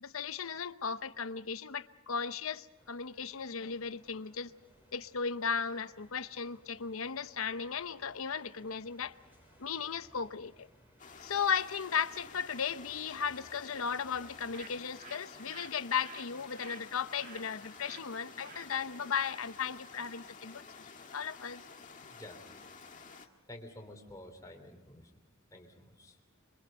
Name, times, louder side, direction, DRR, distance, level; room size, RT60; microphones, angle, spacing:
voice 1, 0.0-4.5 4.9-9.1 9.6-10.7 11.2-20.6 21.1-21.6, left 6 dB, 75° left, 0.8 m, -36 dB
sound 1, 2.8-14.8, equal, 10° right, 6.4 m, -64 dB
sound 2, 11.0-23.3, left 5 dB, 40° left, 1.8 m, -52 dB
Bird, 14.2-20.4, right 4 dB, 45° right, 1.9 m, -54 dB
voice 2, 23.5-25.1 25.5-26.2, left 1 dB, 15° left, 3.5 m, -50 dB
26.0 x 24.5 x 5.3 m
head